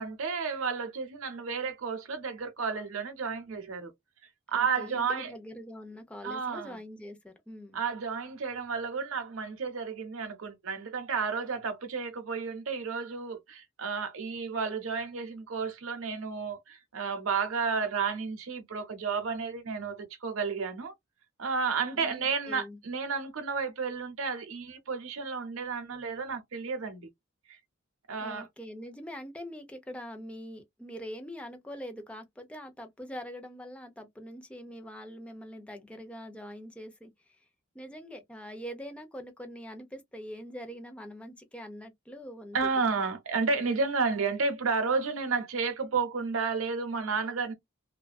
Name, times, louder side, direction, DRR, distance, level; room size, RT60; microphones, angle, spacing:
voice 1, 0.0-3.9 4.5-5.3 6.2-6.8 7.7-20.9 21.4-27.1 28.1-28.5 42.5-47.5, right 5 dB, 75° right, 0.7 m, -32 dB
voice 2, 4.5-7.8 21.9-22.8 28.2-37.4 37.7-42.8 44.1-44.2, equal, 5° left, 0.4 m, -43 dB
2.5 x 2.2 x 2.2 m
head